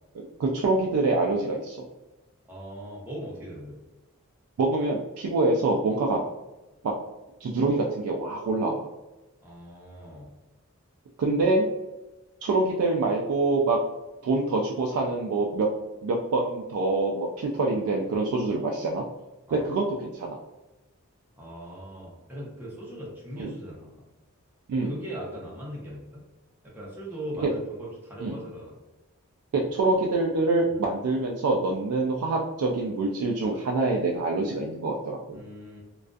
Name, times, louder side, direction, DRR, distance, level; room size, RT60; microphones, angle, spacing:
voice 1, 0.2-1.8 4.6-6.3 6.8-6.9 7.4-8.9 11.2-11.7 12.4-13.8 14.2-15.7 16.0-19.0 19.5-20.4 23.4-23.5 24.7-24.9 27.4-27.5 28.2-28.4 29.5-35.4, right 2 dB, 80° right, -1 dB, 0.3 m, -25 dB
voice 2, 2.4-3.8 9.4-10.3 19.5-19.7 21.4-24.0 24.8-26.2 26.6-28.8 29.8-29.9 30.7-30.8 35.3-35.8, equal, 10° right, -6 dB, 0.6 m, -40 dB
2.4 x 2.3 x 2.3 m, 1.0 s
head